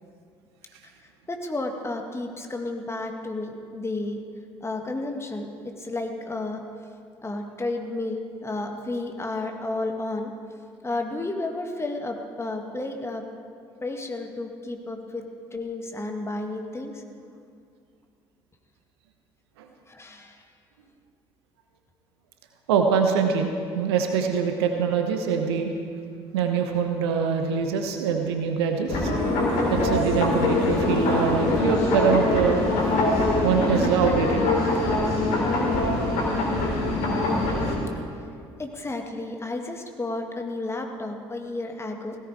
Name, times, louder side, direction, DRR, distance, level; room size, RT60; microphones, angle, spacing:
voice 1, 1.3-4.2 4.6-6.6 7.2-10.3 10.8-13.2 13.8-15.2 15.5-17.0 19.9-20.4 38.6-42.2, left 2 dB, 20° left, 3 dB, 1.8 m, -32 dB
voice 2, 22.7-23.5 23.7-25.7 26.3-29.1 29.7-32.9 33.4-34.4, right 6 dB, 70° right, 5 dB, 1.1 m, -24 dB
sound 1, 28.9-37.8, left 2 dB, 60° left, 3.1 m, -23 dB
17.0 x 14.5 x 4.7 m, 2.3 s
figure-of-eight pair, 50°, 14 cm